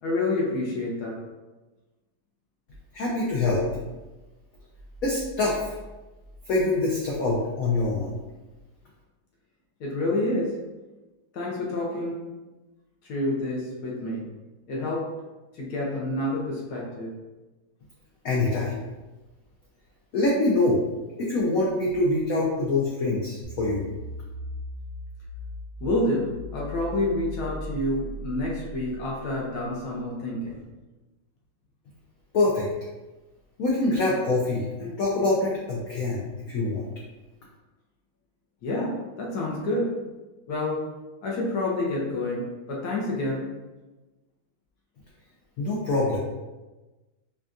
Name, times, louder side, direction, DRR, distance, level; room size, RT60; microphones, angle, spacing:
voice 1, 0.0-1.2 9.8-10.6 11.3-12.2 13.0-14.3 14.7-15.1 15.5-17.1 25.8-30.7 38.6-39.9 40.5-40.8 41.2-43.5, left 2 dB, 65° left, -3 dB, 1.0 m, -28 dB
voice 2, 2.9-3.6 5.0-5.7 6.5-8.1 18.2-18.8 20.1-20.8 21.2-23.9 32.3-32.7 33.6-36.8 45.6-46.2, left 2 dB, 90° left, -4 dB, 0.7 m, -25 dB
sound 1, 23.4-29.7, equal, 70° right, 0.9 m, -38 dB
5.2 x 2.3 x 2.5 m, 1.1 s
omnidirectional pair, 2.2 m